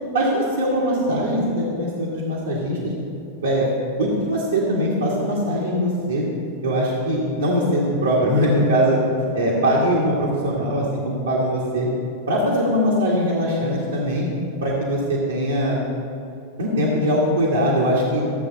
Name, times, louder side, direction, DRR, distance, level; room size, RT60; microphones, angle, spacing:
voice 1, 0.1-2.9 3.4-3.7 4.0-6.2 6.6-9.0 9.3-11.9 12.3-14.3 14.6-15.8 16.6-18.2, equal, 70° right, -5 dB, 2.0 m, -21 dB
14.0 x 8.2 x 4.1 m, 2.6 s
figure-of-eight pair, 90°, 0 cm